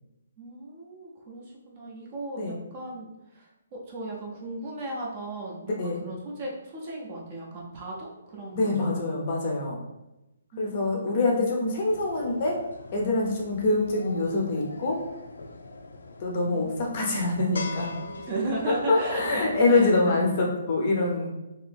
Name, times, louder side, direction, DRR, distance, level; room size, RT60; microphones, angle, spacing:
voice 1, 0.4-3.0 3.3-9.0 10.5-11.1 18.1-20.2, right 2 dB, 25° right, -2 dB, 0.5 m, -36 dB
voice 2, 5.6-6.0 8.5-9.8 10.6-12.6 12.9-15.0 16.2-17.9 18.9-21.3, left 2 dB, 30° left, -1 dB, 0.5 m, -25 dB
sound 1, 11.9-20.0, left 3 dB, 75° left, 0.4 m, -43 dB
2.7 x 2.5 x 3.4 m, 0.97 s
hypercardioid pair, 175°, 0 cm